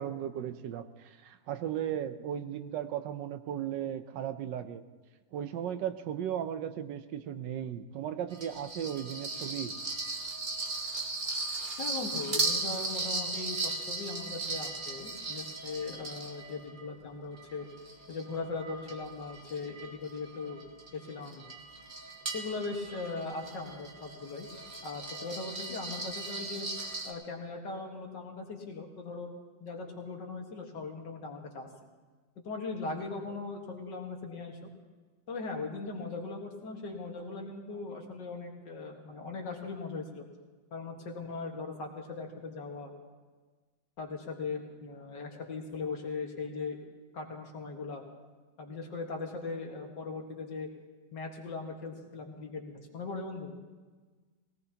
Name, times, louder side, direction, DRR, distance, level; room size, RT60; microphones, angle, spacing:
voice 1, 0.0-4.8 5.3-9.7, right 10 dB, 75° right, 11 dB, 1.3 m, -36 dB
sound 1, 8.3-16.8 17.4-27.1, right 3 dB, 30° right, 1.0 m, -37 dB
voice 2, 11.8-17.7 18.1-20.6 20.9-21.5 22.3-24.5 24.8-26.7 27.0-29.3 29.6-31.7 32.4-34.7 35.3-40.3 40.7-42.9 44.0-46.8 47.1-48.0 48.6-50.7 51.1-53.6, left 3 dB, 70° left, 1 dB, 2.2 m, -39 dB
20.0 x 17.5 x 2.9 m, 1.4 s
omnidirectional pair, 2.0 m